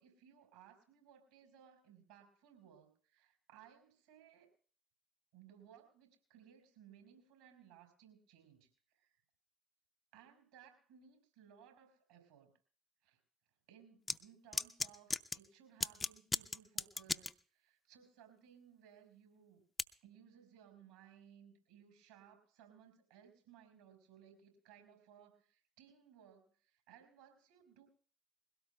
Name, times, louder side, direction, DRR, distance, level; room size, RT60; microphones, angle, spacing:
voice 1, 0.0-4.5 5.3-8.7 8.9-9.1 10.1-12.5 13.0-13.2 13.7-19.6 20.0-27.9, right 9 dB, 75° right, 5 dB, 4.7 m, -62 dB
sound 1, 14.1-14.2 14.5-15.4 15.8-17.3 19.8-19.9, left 3 dB, 25° left, 0.6 m, -36 dB
22.0 x 17.0 x 2.2 m, 0.42 s
figure-of-eight pair, 50°, 0 cm